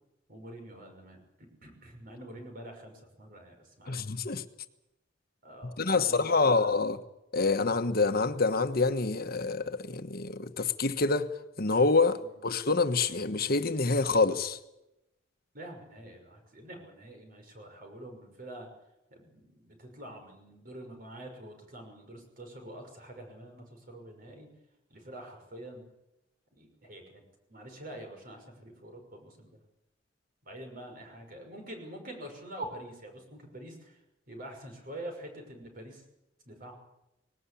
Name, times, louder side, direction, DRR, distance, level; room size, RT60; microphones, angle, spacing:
voice 1, 0.3-4.0 5.4-6.7 12.2-12.4 15.5-18.7 19.1-24.5 24.9-25.9 26.5-27.2 27.5-29.6 30.4-34.0 34.3-36.0 36.5-36.7, right 1 dB, 50° right, 5.9 m, -46 dB
voice 2, 3.9-4.4 5.8-7.0 7.3-11.3 11.6-14.6, left 3 dB, 55° left, 1.3 m, -27 dB
20.0 x 18.5 x 8.5 m
head